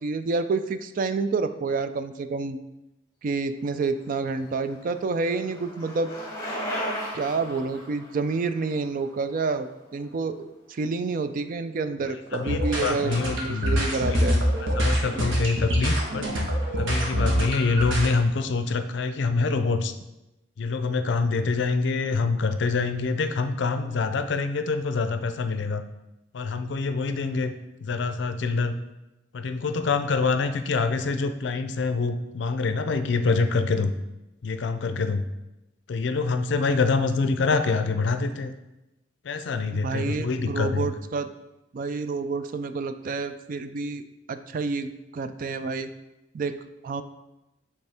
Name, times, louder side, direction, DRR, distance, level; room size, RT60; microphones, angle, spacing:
voice 1, 0.0-2.6 3.2-6.1 7.1-14.4 39.7-41.3 41.7-45.9 46.3-46.6 46.8-47.0, right 4 dB, 45° right, 10 dB, 0.3 m, -29 dB
Bicycle, 4.1-10.1, equal, 15° left, 1.5 m, -36 dB
voice 2, 12.3-13.8 14.1-14.4 14.8-16.3 16.7-19.9 20.6-25.8 26.3-27.5 27.8-28.7 29.3-33.9 34.4-35.2 35.9-38.5 39.2-40.9, left 4 dB, 65° left, 9 dB, 0.4 m, -25 dB
sound 1, 12.3-18.1, equal, 90° right, 1.3 m, -25 dB
8.0 x 3.4 x 3.5 m, 0.96 s
head